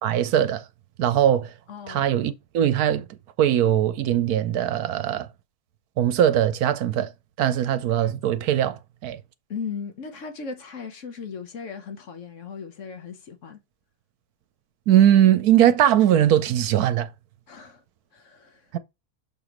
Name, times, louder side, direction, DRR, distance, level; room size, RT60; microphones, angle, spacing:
voice 1, 0.0-0.6 1.0-1.5 1.9-3.0 3.4-5.3 6.0-7.1 7.4-9.2 14.9-17.1, right 11 dB, 75° right, 1.2 m, -20 dB
voice 2, 1.7-2.0 9.5-13.6 17.5-17.8 18.1-18.8, left 5 dB, 55° left, 1.2 m, -37 dB
6.8 x 5.0 x 3.0 m
omnidirectional pair, 1.6 m